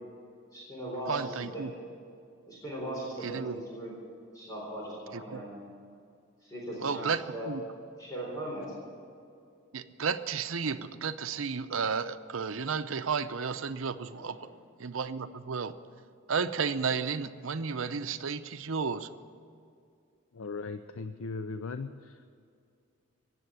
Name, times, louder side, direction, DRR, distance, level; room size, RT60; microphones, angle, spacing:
voice 1, 0.5-1.7 2.5-3.9 4.3-5.6 6.4-7.1 7.3-7.5 8.0-8.7 14.1-14.2, right 1 dB, 20° left, -5 dB, 3.8 m, -39 dB
voice 2, 1.1-1.7 3.2-3.6 5.1-5.4 6.8-7.6 9.7-14.5 14.8-15.7 16.3-19.1, right 5 dB, 75° right, 11 dB, 0.7 m, -33 dB
voice 3, 20.3-22.2, left 4 dB, 85° left, 10 dB, 0.5 m, -38 dB
17.0 x 7.8 x 9.8 m, 2.4 s
head